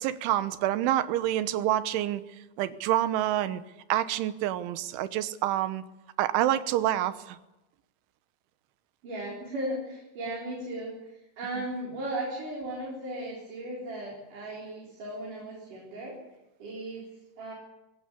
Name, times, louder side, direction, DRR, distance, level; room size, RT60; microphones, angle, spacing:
voice 1, 0.0-2.2 2.6-3.6 3.9-5.8 6.2-7.4, right 13 dB, 85° right, 13 dB, 3.5 m, -27 dB
voice 2, 9.0-16.2 16.6-17.5, right 1 dB, 45° right, -3 dB, 5.5 m, -36 dB
21.5 x 17.0 x 8.5 m, 0.97 s
omnidirectional pair, 5.3 m